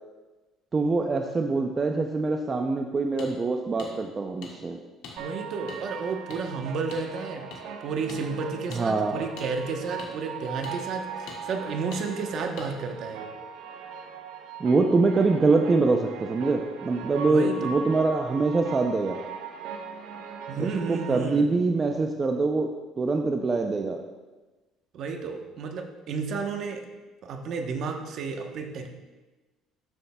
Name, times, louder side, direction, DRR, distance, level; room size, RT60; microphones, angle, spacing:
voice 1, 0.7-4.8 8.7-9.2 14.6-19.2 20.6-24.0, right 3 dB, 25° right, 3 dB, 0.5 m, -24 dB
sound 1, 3.2-3.3 3.8-3.9 4.4-4.5 5.0-5.2 5.7-5.8 6.3-6.4 6.9-7.0 7.5-7.6 8.1-8.2 8.7-8.8 9.4-9.5 10.0-10.1 10.6-10.8 11.3-11.4 11.9-12.0 12.6-12.7, left 5 dB, 80° left, 1.8 m, -42 dB
voice 2, 5.2-7.4 7.8-13.4 17.3-17.6 20.5-21.5 24.9-26.8 27.2-28.9, right 4 dB, 50° right, 4 dB, 0.9 m, -32 dB
sound 2, 5.2-21.2, right 5 dB, 75° right, 0.8 m, -39 dB
12.0 x 7.1 x 2.3 m, 1.2 s
cardioid pair, 140°, 0 cm